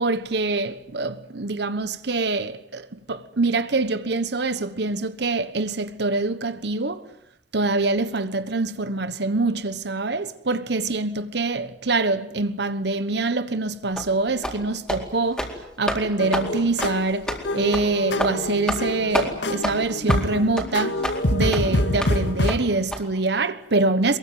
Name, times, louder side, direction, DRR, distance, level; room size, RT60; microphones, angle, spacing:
voice 1, 0.0-7.0 7.5-15.5 15.8-21.0 21.3-24.2, right 3 dB, 65° right, 1.2 m, -25 dB
sound 1, 14.0-14.1 14.4-14.6 14.9-15.0 15.3-15.5 15.9-16.0 16.3-16.5 16.8-16.9 17.3-17.4 17.7-17.9 18.2-18.3 18.7-18.9 19.1-19.3 19.6-19.7 20.1-20.2 20.6-20.7 21.0-21.2 21.5-21.6 22.0-22.1 22.5-22.6 22.9-23.0, equal, 5° left, 4.2 m, -27 dB
sound 2, 16.2-22.5, left 1 dB, 70° left, 2.3 m, -26 dB
23.0 x 22.5 x 9.4 m
head